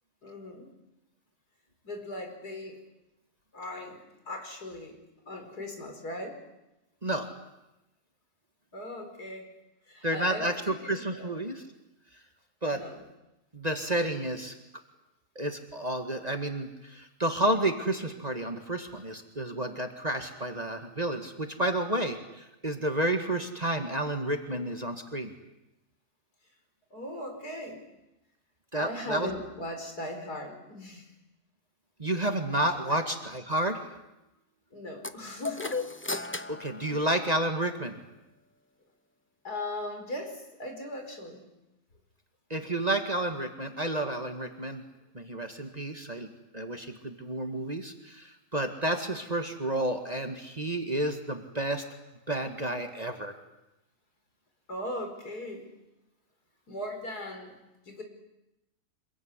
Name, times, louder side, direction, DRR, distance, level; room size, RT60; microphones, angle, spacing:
voice 1, 0.2-0.7 1.8-2.8 3.5-5.0 5.3-6.4 8.7-9.5 9.9-11.3 12.7-13.0 26.9-27.9 28.7-31.1 32.9-33.0 34.7-35.9 36.9-37.1 39.4-41.4 49.3-49.4 54.7-55.7 56.7-57.6 57.9-58.0, left 1 dB, 70° left, 4 dB, 5.3 m, -39 dB
voice 2, 10.0-11.6 12.6-12.8 13.5-14.5 15.4-25.3 28.7-29.3 32.0-33.9 36.5-38.0 42.5-44.8 45.1-51.8 52.3-53.3, right 1 dB, 25° right, 5 dB, 2.0 m, -31 dB
sound 1, 35.0-37.7, left 3 dB, 10° left, 0.5 m, -36 dB
26.5 x 22.0 x 9.8 m, 0.93 s
omnidirectional pair, 1.7 m